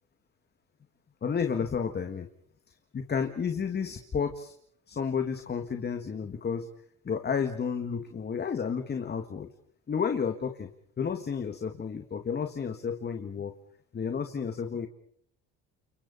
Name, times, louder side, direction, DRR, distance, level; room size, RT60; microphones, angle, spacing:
voice 1, 1.2-2.3 2.9-4.5 4.9-6.7 7.1-9.5 9.9-10.7 11.0-13.5 13.9-14.9, left 6 dB, 30° left, 6 dB, 1.9 m, -31 dB
30.0 x 29.0 x 4.2 m, 0.63 s
supercardioid pair, 100°, 33 cm